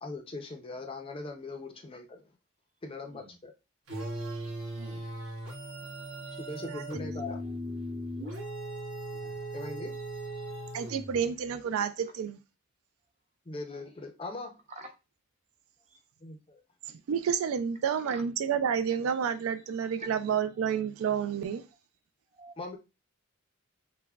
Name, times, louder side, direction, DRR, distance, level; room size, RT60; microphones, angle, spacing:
voice 1, 0.0-2.2 2.8-3.5 6.4-7.4 9.5-9.9 13.5-14.5 16.2-16.4 22.6-22.8, left 2 dB, 25° left, 0.4 m, -40 dB
sound 1, 3.9-11.3, right 1 dB, 60° right, 1.1 m, -38 dB
voice 2, 4.7-5.0 6.0-6.5 8.4-8.5 9.1-9.3 9.9-10.0 10.3-10.6 14.8-14.9 22.4-22.5, right 2 dB, 35° right, 0.7 m, -51 dB
voice 3, 10.7-12.4 16.9-21.7, right 7 dB, 75° right, 0.3 m, -30 dB
5.7 x 2.1 x 2.2 m
head